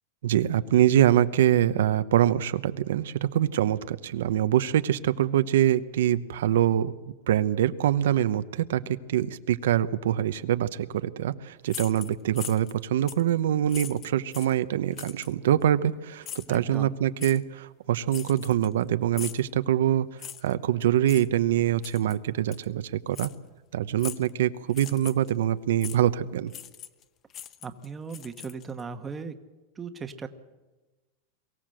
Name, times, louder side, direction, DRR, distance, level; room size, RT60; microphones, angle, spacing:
voice 1, 0.2-6.9 7.3-20.1 20.4-23.3 23.7-26.5, right 11 dB, 80° right, 12 dB, 0.8 m, -24 dB
sound 1, 11.7-12.8 13.1-13.3 13.7-14.6 15.0-15.3 16.2-16.6 17.2-17.4 18.1-18.8 19.1-19.5 20.2-20.5 21.1-21.3 21.8-22.2 22.5-22.7 23.1-23.4 24.0-24.3 24.7-25.3 25.8-26.0 26.5-27.0 27.3-28.8, left 10 dB, 25° left, 0.8 m, -40 dB
voice 2, 16.5-16.9 27.6-29.4 29.7-30.3, right 5 dB, 15° right, 8 dB, 1.1 m, -37 dB
23.0 x 16.0 x 7.6 m, 1.2 s
supercardioid pair, 160°, 0 cm